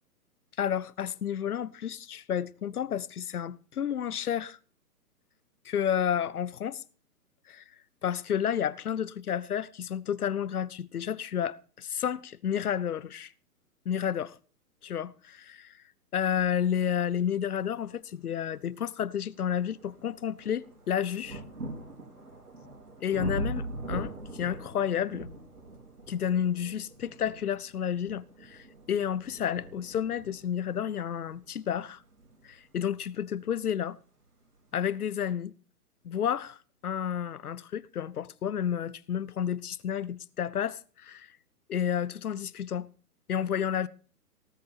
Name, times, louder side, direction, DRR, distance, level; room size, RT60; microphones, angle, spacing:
voice 1, 0.6-4.6 5.6-6.8 7.5-7.6 8.0-13.3 13.8-14.4 14.8-15.8 16.1-21.4 23.0-25.3 26.1-32.0 32.4-34.0 34.7-35.5 36.0-41.3 41.7-42.9 43.3-43.9, left 9 dB, 75° left, 0.9 m, -31 dB
sound 1, 18.3-18.4 19.0-33.7 34.6-34.7, right 2 dB, 85° right, 4.2 m, -42 dB
18.5 x 8.5 x 4.3 m
figure-of-eight pair, 130°, 45 cm